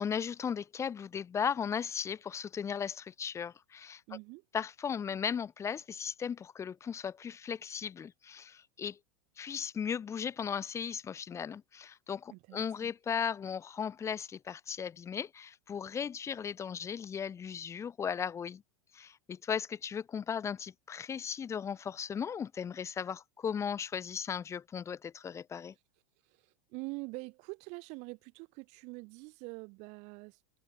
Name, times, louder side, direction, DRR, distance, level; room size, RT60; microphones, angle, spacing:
voice 1, 0.0-4.0 4.5-9.0 9.4-18.6 18.9-25.7, left 7 dB, 15° left, 1.5 m, -36 dB
voice 2, 4.1-4.4 12.3-12.9 26.2-30.4, right 28 dB, 45° right, 2.4 m, -45 dB
supercardioid pair, 155°, 17 cm